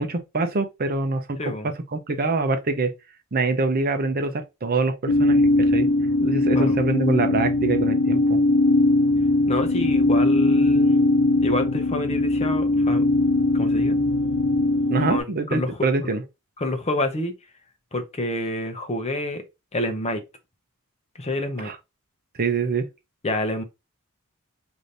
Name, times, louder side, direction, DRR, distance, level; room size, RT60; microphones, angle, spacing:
voice 1, 0.0-1.5 1.9-2.9 3.3-5.4 5.7-5.9 6.2-8.4 14.9-16.2 21.6-21.8 22.4-22.9, right 3 dB, 45° right, 0.6 m, -24 dB
voice 2, 1.4-1.7 6.5-6.8 9.5-11.1 11.4-13.0 13.5-14.0 15.1-15.8 16.6-17.3 17.9-19.4 19.7-20.2 21.2-21.7 23.2-23.6, left 1 dB, 30° left, 0.7 m, -28 dB
sound 1, 5.1-15.2, left 2 dB, 75° left, 0.8 m, -20 dB
4.9 x 2.7 x 2.6 m
head